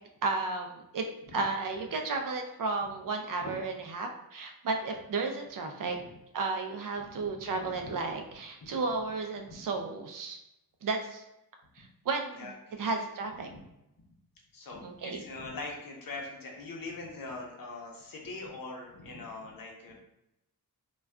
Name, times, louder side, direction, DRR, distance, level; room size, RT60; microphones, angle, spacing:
voice 1, 0.2-1.1 1.3-6.0 6.3-10.4 10.8-11.2 11.8-12.5 12.8-13.5 14.8-15.2, right 3 dB, 60° right, 4 dB, 0.4 m, -33 dB
voice 2, 7.0-8.0 8.6-8.7 9.5-9.6 12.3-13.0 13.5-13.6 14.5-19.9, left 3 dB, 65° left, 0 dB, 0.7 m, -43 dB
2.3 x 2.2 x 3.5 m, 0.86 s
wide cardioid pair, 115°, 37 cm